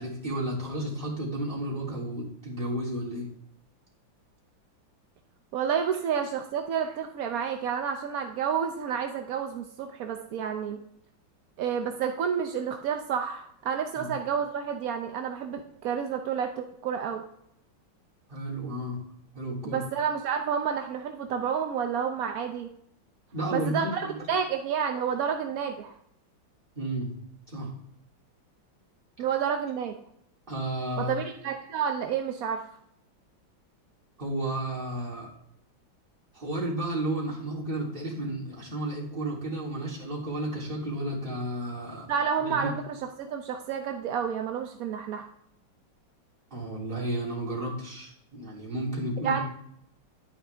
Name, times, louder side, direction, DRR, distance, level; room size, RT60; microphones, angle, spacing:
voice 1, 0.0-3.3 13.9-14.1 18.3-19.0 19.3-19.8 23.3-24.3 26.7-27.1 27.5-27.7 30.5-31.2 34.2-35.3 36.3-42.1 42.4-42.7 46.5-49.4, right 1 dB, 25° right, -4 dB, 3.2 m, -32 dB
voice 2, 5.5-10.8 11.6-17.2 19.6-22.7 23.5-25.9 29.2-30.0 31.0-32.6 42.1-45.3 49.2-49.4, right 7 dB, 65° right, 4 dB, 0.9 m, -30 dB
10.5 x 8.8 x 3.4 m, 0.73 s
omnidirectional pair, 2.2 m